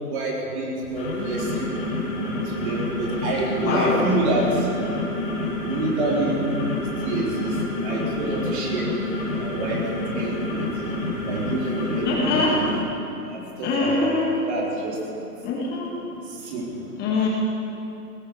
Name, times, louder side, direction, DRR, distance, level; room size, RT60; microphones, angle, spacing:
voice 1, 0.0-1.7 2.4-4.7 5.6-6.4 7.0-7.5 7.8-8.9 9.4-9.8 10.1-10.7 11.2-12.4 13.3-14.1 14.5-15.0 16.3-16.9, right 2 dB, 45° right, -3 dB, 4.1 m, -27 dB
sound 1, 0.8-12.8, left 1 dB, 35° left, 4.0 m, -28 dB
voice 2, 3.6-4.1 12.1-12.6 13.6-14.3 15.4-15.9 17.0-17.3, left 3 dB, 20° left, -3 dB, 1.8 m, -23 dB
17.5 x 16.0 x 4.9 m, 2.8 s
hypercardioid pair, 140°, 48 cm